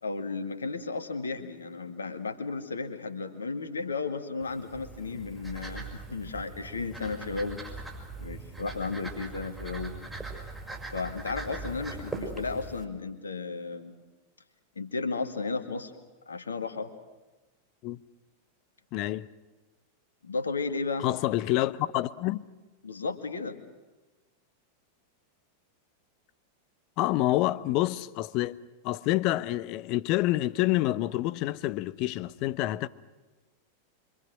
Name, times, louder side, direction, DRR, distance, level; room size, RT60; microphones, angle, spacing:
voice 1, 0.0-7.6 8.2-9.9 10.9-14.0 14.8-15.9 16.3-16.9 20.2-21.1 22.8-23.6, left 4 dB, 75° left, 2.2 m, -34 dB
sound 1, 4.4-12.8, right 3 dB, 10° right, 5.7 m, -41 dB
voice 2, 18.9-19.3 21.0-22.5 27.0-28.6 28.8-32.9, left 16 dB, 40° left, 0.8 m, -27 dB
26.5 x 25.0 x 6.4 m
figure-of-eight pair, 90°, 0 cm